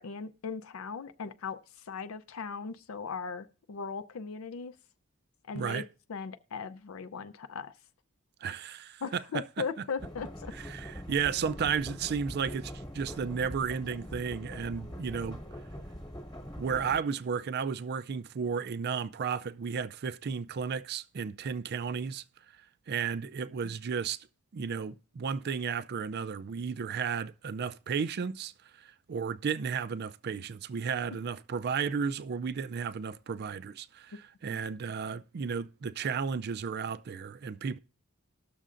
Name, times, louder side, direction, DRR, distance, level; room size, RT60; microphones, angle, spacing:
voice 1, 0.0-4.7 5.4-5.8 6.1-7.7 9.0-10.5 34.5-34.6, left 5 dB, 70° left, 0.5 m, -38 dB
voice 2, 5.5-5.8 8.4-9.2 10.7-15.4 16.6-22.2 22.9-24.2 24.5-28.5 28.8-37.8, right 6 dB, 50° right, 0.4 m, -33 dB
sound 1, 10.0-17.0, equal, 20° left, 1.2 m, -43 dB
19.5 x 6.6 x 2.5 m
head